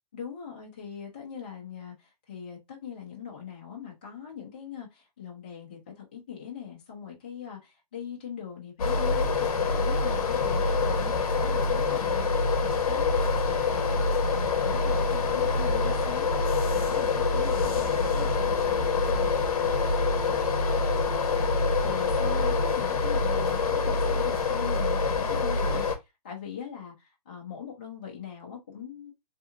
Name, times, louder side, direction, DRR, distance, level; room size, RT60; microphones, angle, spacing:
voice 1, 0.1-16.3 16.7-19.3 20.1-20.4 21.8-29.1, left 8 dB, 15° left, 0.4 m, -41 dB
sound 1, 8.8-26.0, left 4 dB, 60° left, 0.7 m, -25 dB
2.8 x 2.4 x 2.4 m
hypercardioid pair, 175°, 20 cm